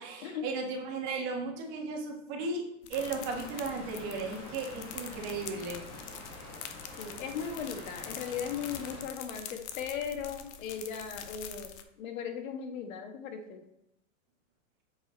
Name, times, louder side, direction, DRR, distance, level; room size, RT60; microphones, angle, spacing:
voice 1, 0.0-2.6 2.9-5.8, right 4 dB, 40° right, 1 dB, 1.9 m, -35 dB
sound 1, 2.8-11.8, left 9 dB, 55° left, 0.9 m, -45 dB
sound 2, 2.9-9.0, left 1 dB, 35° left, 1.5 m, -46 dB
voice 2, 7.0-13.6, left 7 dB, 75° left, 6 dB, 1.5 m, -38 dB
8.0 x 4.9 x 4.0 m, 0.83 s
supercardioid pair, 155°, 41 cm